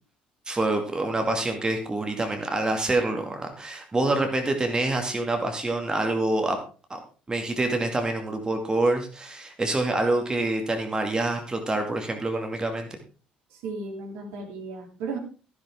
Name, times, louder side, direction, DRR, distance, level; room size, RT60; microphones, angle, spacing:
voice 1, 0.5-6.6 6.9-7.0 7.3-13.0, right 2 dB, 20° right, 4 dB, 2.2 m, -26 dB
voice 2, 13.5-15.2, right 4 dB, 60° right, 2 dB, 3.3 m, -35 dB
14.5 x 11.0 x 3.7 m, 0.36 s
figure-of-eight pair, 55°, 4 cm